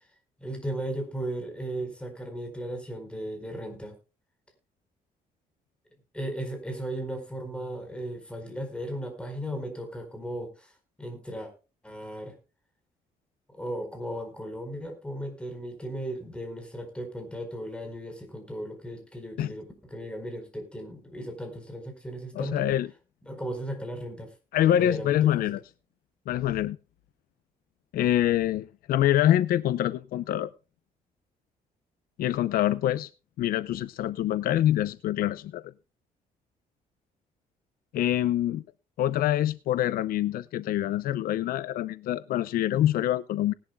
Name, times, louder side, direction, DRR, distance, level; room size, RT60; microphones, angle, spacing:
voice 1, 0.4-3.9 6.1-10.7 11.0-11.5 11.8-12.4 13.5-22.7 23.2-24.3 24.6-25.4, right 1 dB, 5° left, 4.6 m, -36 dB
voice 2, 22.3-22.9 24.5-25.6 26.3-26.8 27.9-30.5 32.2-33.1 33.4-35.7 37.9-38.6 39.0-43.5, left 12 dB, 80° left, 0.6 m, -25 dB
19.5 x 11.5 x 2.3 m
cardioid pair, 120°, 15 cm